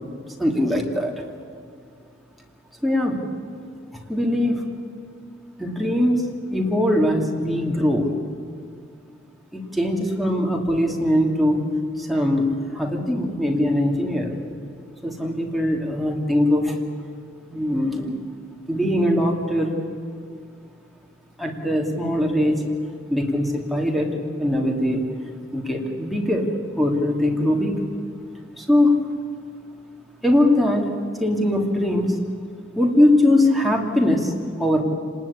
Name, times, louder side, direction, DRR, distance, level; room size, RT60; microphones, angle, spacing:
voice 1, 0.4-1.1 2.8-3.2 4.1-4.6 5.6-6.2 6.5-8.1 9.5-11.7 12.0-14.3 15.0-16.8 17.5-18.2 18.7-19.8 21.4-22.6 23.1-25.0 25.5-26.5 26.8-27.8 28.6-29.0 30.2-30.9 31.2-32.2 32.8-34.8, left 1 dB, ahead, 0 dB, 2.8 m, -21 dB
29.5 x 20.0 x 8.7 m, 2.3 s
head